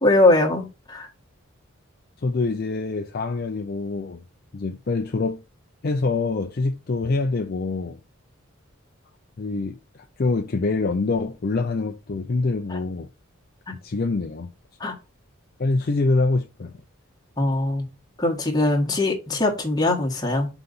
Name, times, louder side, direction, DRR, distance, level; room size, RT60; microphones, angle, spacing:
voice 1, 0.0-1.1 12.7-12.8 13.7-13.8 14.8-14.9 17.4-17.9 18.2-20.5, left 2 dB, 20° left, 1.6 m, -21 dB
voice 2, 2.2-4.2 4.5-5.4 5.8-8.0 9.4-13.1 13.8-14.5 15.6-16.7, left 3 dB, 45° left, 0.5 m, -25 dB
5.8 x 4.0 x 5.5 m
head